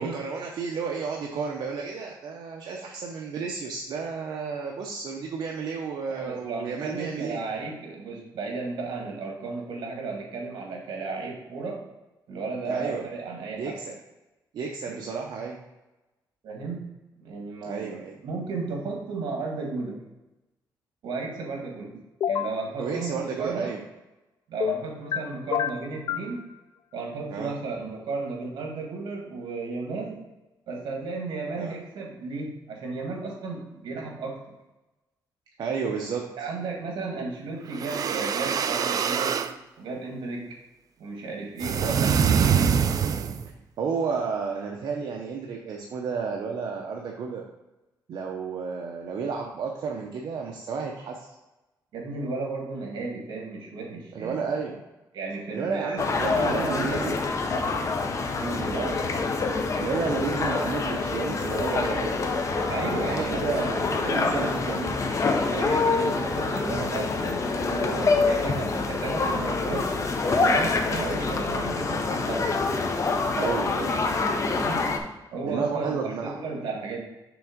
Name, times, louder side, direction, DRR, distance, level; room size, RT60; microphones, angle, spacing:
voice 1, 0.0-7.4 12.7-13.0 13.6-13.9 14.5-15.6 17.7-18.2 22.8-23.8 27.3-27.5 31.6-31.7 35.6-36.3 41.7-42.0 43.8-47.4 48.1-51.3 54.1-54.8 55.5-57.2 58.7-59.0 59.8-62.2 62.8-65.0 70.9-71.2 73.4-74.0 75.4-76.4, right 5 dB, 70° right, -1 dB, 0.8 m, -32 dB
voice 2, 6.1-11.8 12.3-13.8 14.9-15.0 15.4-15.5 16.4-16.9 17.2-17.9 18.2-20.0 21.0-22.0 22.3-23.7 24.5-26.5 26.9-30.2 30.7-34.4 36.4-39.4 39.8-40.5 41.0-42.1 51.9-54.4 55.1-57.2 58.4-58.9 62.7-64.4 65.4-69.9 70.3-72.6 74.3-74.9 75.3-77.0, right 3 dB, 85° right, -1 dB, 1.8 m, -34 dB
sound 1, 22.2-22.6 24.6-25.2 25.5-26.3, left 8 dB, 65° left, 0.4 m, -27 dB
sound 2, 37.7-39.5 41.6-43.5, right 7 dB, 50° right, 0.4 m, -24 dB
sound 3, 56.0-75.0, left 3 dB, 40° left, 0.7 m, -26 dB
6.1 x 3.6 x 5.1 m, 1.0 s
cardioid pair, 125°, 8 cm